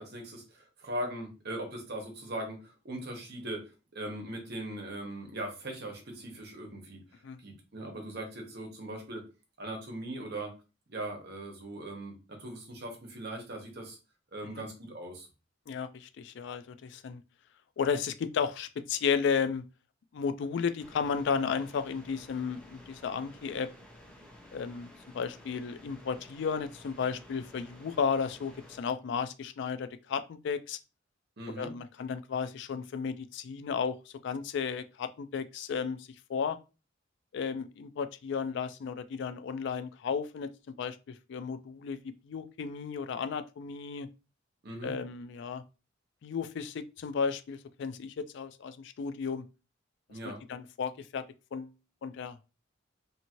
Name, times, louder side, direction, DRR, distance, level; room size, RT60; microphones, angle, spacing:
voice 1, 0.0-9.2 9.6-10.5 10.9-14.0 14.3-15.3 31.4-31.7 44.6-44.9 50.1-50.4, right 1 dB, 55° right, 0.9 m, -40 dB
voice 2, 15.7-17.2 17.8-19.6 20.1-23.7 24.5-24.9 25.1-30.8 31.6-36.6 37.3-40.5 40.8-44.1 44.8-45.6 46.2-49.4 50.2-51.2 51.5-51.7 52.0-52.5, left 6 dB, 60° left, 0.3 m, -33 dB
sound 1, 20.8-28.8, equal, 5° left, 0.6 m, -53 dB
2.7 x 2.6 x 2.9 m
head